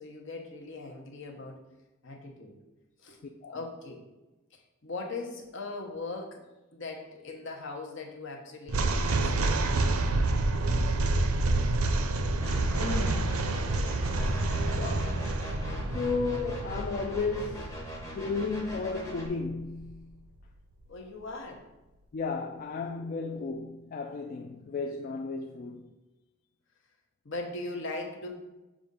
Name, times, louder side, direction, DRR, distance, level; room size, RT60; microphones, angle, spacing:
voice 1, 0.0-1.6 2.0-2.6 3.0-4.0 4.5-6.5 6.7-10.3 20.9-21.7 22.8-23.5 27.2-28.3, left 3 dB, 60° left, 1.0 m, -40 dB
sound 1, 8.7-20.0, right 2 dB, 85° right, 0.5 m, -29 dB
sound 2, 12.4-19.3, equal, 15° left, 1.0 m, -42 dB
voice 2, 12.7-13.7 14.8-15.3 15.9-20.2 22.1-25.9, left 4 dB, 40° left, 0.3 m, -34 dB
6.9 x 2.5 x 5.3 m
head